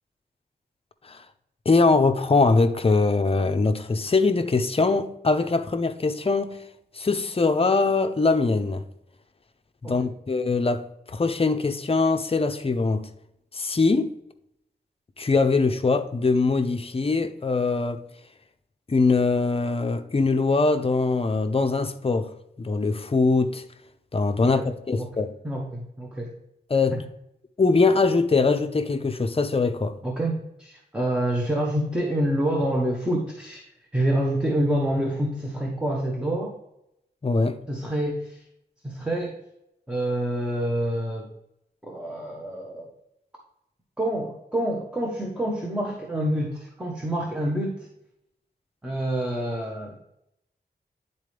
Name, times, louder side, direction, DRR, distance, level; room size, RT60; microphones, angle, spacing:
voice 1, 1.7-6.6 6.9-8.8 9.8-13.1 13.5-14.1 15.2-18.0 18.9-23.6 24.1-25.3 26.7-27.0 27.6-30.0 37.2-37.6, left 3 dB, 35° left, 0.6 m, -22 dB
voice 2, 25.4-26.3 26.9-27.0 30.0-33.6 33.9-36.5 37.7-38.4 38.8-39.4 39.9-41.3 41.8-42.9 44.0-47.9 48.8-50.0, right 1 dB, 5° right, 1.1 m, -27 dB
10.0 x 4.2 x 3.3 m
wide cardioid pair, 85°, 18 cm